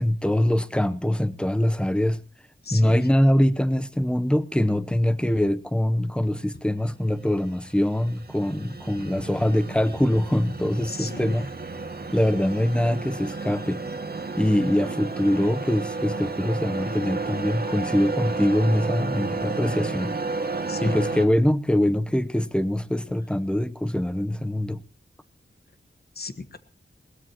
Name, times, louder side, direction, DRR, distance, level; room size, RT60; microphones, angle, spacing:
voice 1, 0.0-2.2 2.7-11.5 12.1-13.8 14.4-20.2 20.8-24.8, left 1 dB, 5° left, 0.8 m, -23 dB
voice 2, 2.6-3.0 10.9-11.3 20.7-21.0 26.2-26.6, left 4 dB, 50° left, 1.4 m, -34 dB
sound 1, 7.1-21.2, right 3 dB, 50° right, 1.9 m, -32 dB
21.0 x 19.5 x 3.0 m
wide cardioid pair, 105°, 20 cm